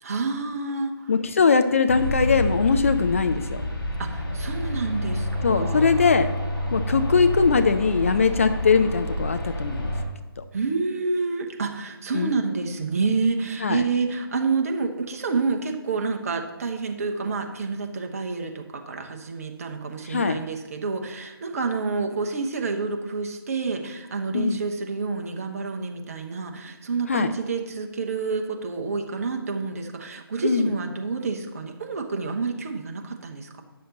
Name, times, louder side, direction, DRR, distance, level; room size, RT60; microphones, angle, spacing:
voice 1, 0.0-0.9 4.0-5.9 10.5-33.6, right 4 dB, 35° right, 4 dB, 1.0 m, -28 dB
voice 2, 1.1-3.6 5.4-6.3 6.7-9.9 12.1-12.4 13.6-13.8 20.0-20.4 24.3-24.6 27.1-27.3 30.4-30.7, left 5 dB, 35° left, 9 dB, 0.4 m, -21 dB
sound 1, 1.9-10.0, equal, 65° left, 3.1 m, -28 dB
9.5 x 6.5 x 3.9 m, 1.1 s
figure-of-eight pair, 150°, 13 cm